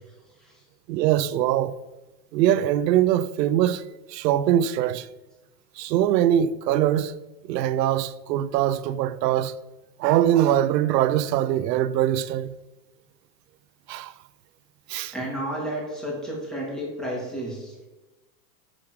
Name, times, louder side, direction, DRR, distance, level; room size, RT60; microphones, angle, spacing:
voice 1, 0.9-1.8 2.3-3.8 4.1-5.1 5.8-7.2 7.5-9.5 10.0-12.5 13.9-14.1 14.9-15.1, right 11 dB, 80° right, 0.6 m, -22 dB
voice 2, 15.1-17.7, right 1 dB, ahead, 2.1 m, -31 dB
7.1 x 6.4 x 4.7 m
supercardioid pair, 150°, 49 cm